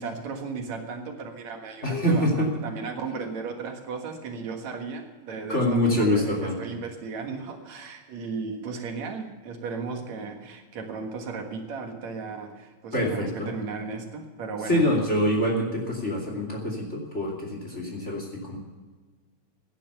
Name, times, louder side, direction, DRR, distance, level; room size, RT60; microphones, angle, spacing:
voice 1, 0.0-14.9, right 4 dB, 70° right, 4 dB, 2.9 m, -35 dB
voice 2, 1.8-2.5 5.5-6.6 12.9-13.5 14.7-18.6, equal, 25° left, 1 dB, 2.7 m, -25 dB
16.5 x 10.0 x 6.8 m, 1.3 s
omnidirectional pair, 3.4 m